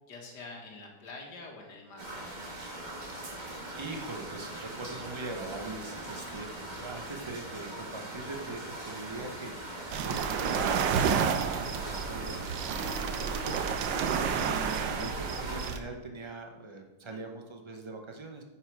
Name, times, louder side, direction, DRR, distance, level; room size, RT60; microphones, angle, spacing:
voice 1, 0.1-2.2, left 3 dB, 65° left, 1 dB, 2.1 m, -46 dB
sound 1, 2.0-15.7, right 1 dB, 25° right, 1.6 m, -41 dB
voice 2, 3.1-14.1 14.3-18.4, right 3 dB, 45° right, 3 dB, 0.3 m, -42 dB
sound 2, 9.9-15.8, right 7 dB, 80° right, 1.4 m, -30 dB
9.7 x 6.6 x 4.7 m, 1.1 s
omnidirectional pair, 2.0 m